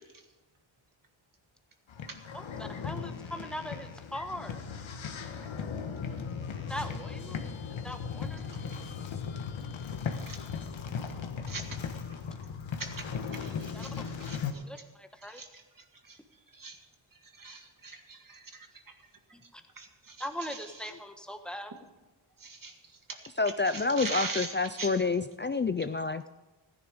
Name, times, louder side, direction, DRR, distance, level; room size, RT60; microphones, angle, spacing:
sound 1, 1.9-14.5, left 6 dB, 65° left, 1.3 m, -37 dB
voice 1, 2.3-4.6 6.7-7.4 7.8-8.4 13.7-13.9 14.7-15.4 19.3-19.6 20.2-21.7, equal, ahead, 6 dB, 1.3 m, -40 dB
voice 2, 17.4-18.4 19.8-20.2 22.4-22.7 23.7-24.5 24.8-24.9, right 4 dB, 40° right, 5 dB, 2.0 m, -39 dB
voice 3, 23.4-26.2, left 4 dB, 25° left, 12 dB, 0.4 m, -28 dB
15.0 x 10.5 x 5.1 m, 1.2 s
cardioid pair, 75°, 50 cm